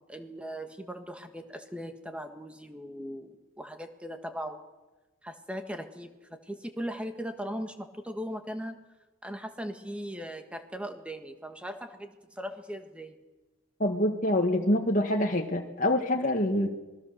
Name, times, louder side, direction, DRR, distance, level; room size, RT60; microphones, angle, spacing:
voice 1, 0.1-4.6 5.2-8.8 9.2-13.2, equal, 5° right, 6 dB, 1.6 m, -39 dB
voice 2, 13.8-16.7, left 1 dB, 35° left, 2 dB, 1.6 m, -26 dB
26.5 x 21.0 x 6.6 m, 1.1 s
head